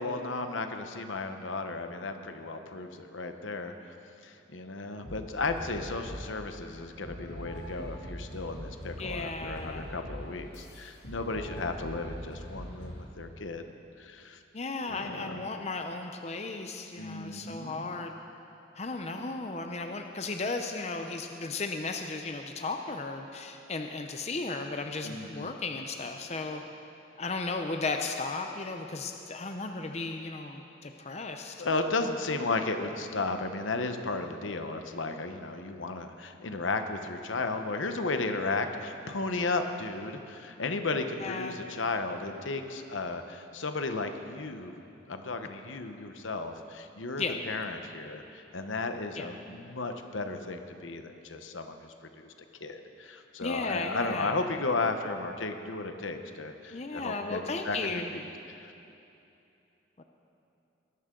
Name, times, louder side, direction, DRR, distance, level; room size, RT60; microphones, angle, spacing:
voice 1, 0.0-3.9 4.2-13.6 14.0-14.4 14.9-15.4 17.0-17.9 25.0-25.6 31.6-44.7 45.1-52.3 52.6-58.3 58.6-58.7, left 3 dB, 85° left, 7 dB, 1.0 m, -34 dB
sound 1, 5.0-6.3 7.0-13.0, equal, 60° left, 2.5 m, -42 dB
voice 2, 9.0-9.9 14.5-18.2 18.8-26.6 27.2-31.7 41.2-41.6 47.2-47.4 49.2-49.3 53.4-54.4 56.7-58.1 60.0-60.1, left 3 dB, 35° left, 5 dB, 0.6 m, -35 dB
21.0 x 12.5 x 3.8 m, 2.7 s
head